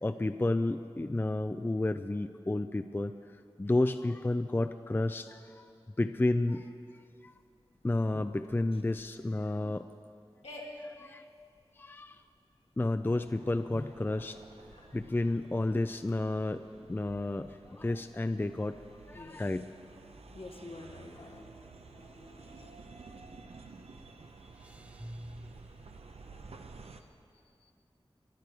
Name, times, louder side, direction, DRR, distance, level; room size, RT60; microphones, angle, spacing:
voice 1, 0.0-3.1 3.6-5.7 6.0-6.7 7.2-7.3 7.8-9.9 10.6-11.3 11.8-12.2 12.8-14.4 14.9-16.6 16.9-18.8 19.1-19.7, left 2 dB, 20° left, 9 dB, 0.4 m, -31 dB
sound 1, 6.3-25.8, left 1 dB, 90° left, 2.0 m, -56 dB
sound 2, 13.2-27.0, right 4 dB, 85° right, 0.8 m, -53 dB
voice 2, 19.1-19.4 20.3-21.2 26.2-26.5 26.8-27.1 27.6-27.7, left 2 dB, 65° left, 4 dB, 1.3 m, -49 dB
sound 3, 19.6-19.8 20.1-20.2 22.0-23.5 23.9-26.9, right 1 dB, 15° right, 0.7 m, -51 dB
21.0 x 12.0 x 4.8 m, 2.5 s
wide cardioid pair, 50°, 10 cm